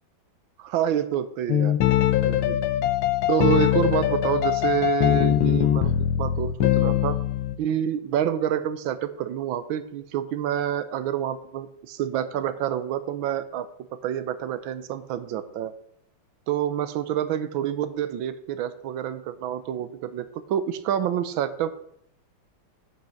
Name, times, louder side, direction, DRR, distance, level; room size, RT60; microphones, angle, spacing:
voice 1, 0.6-1.8 2.2-2.6 3.3-7.2 7.6-13.7 14.0-15.7 16.5-21.8, right 10 dB, 80° right, 13 dB, 1.5 m, -27 dB
sound 1, 1.5-7.6, left 12 dB, 80° left, 1.5 m, -22 dB
9.2 x 5.8 x 7.1 m, 0.71 s
omnidirectional pair, 2.2 m